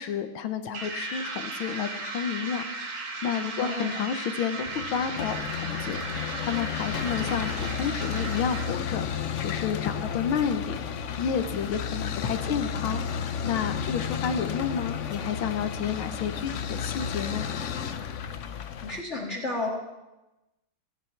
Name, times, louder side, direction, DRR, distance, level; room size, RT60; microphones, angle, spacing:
voice 1, 0.0-10.8 11.2-17.5, left 7 dB, 70° left, 9 dB, 1.7 m, -31 dB
sound 1, 0.7-9.0, right 3 dB, 65° right, 2.5 m, -36 dB
voice 2, 3.6-4.0 18.8-19.8, left 2 dB, 35° left, -1 dB, 2.1 m, -32 dB
sound 2, 4.7-19.0, left 7 dB, 90° left, 0.6 m, -32 dB
26.0 x 9.7 x 4.5 m, 1.0 s
omnidirectional pair, 2.4 m